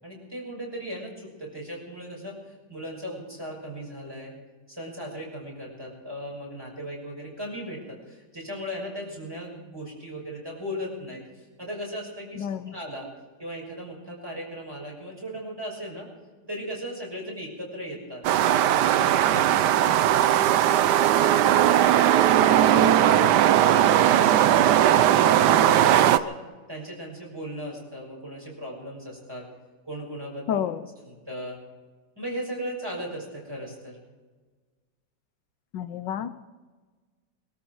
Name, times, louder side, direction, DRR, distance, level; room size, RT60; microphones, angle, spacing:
voice 1, 0.0-4.3 4.7-13.1 13.4-16.1 16.5-18.2 18.7-20.7 24.4-26.4 26.7-29.5 29.8-30.6 31.0-31.6 32.2-34.0, equal, 15° right, -3 dB, 6.1 m, -37 dB
voice 2, 12.4-12.7 30.5-30.8 35.7-36.4, left 9 dB, 80° left, 11 dB, 1.4 m, -30 dB
sound 1, 18.2-26.2, right 11 dB, 75° right, 1.2 m, -19 dB
22.5 x 13.5 x 4.7 m, 1.4 s
omnidirectional pair, 1.9 m